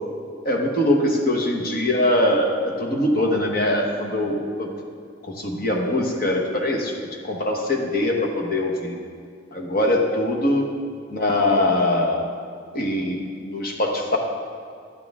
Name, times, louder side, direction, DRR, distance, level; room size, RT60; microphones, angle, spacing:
voice 1, 0.4-4.7 5.2-6.9 7.2-9.0 9.5-10.6 11.1-12.2 12.7-14.2, left 1 dB, 45° left, 1 dB, 1.3 m, -22 dB
12.0 x 9.6 x 3.6 m, 2.2 s
head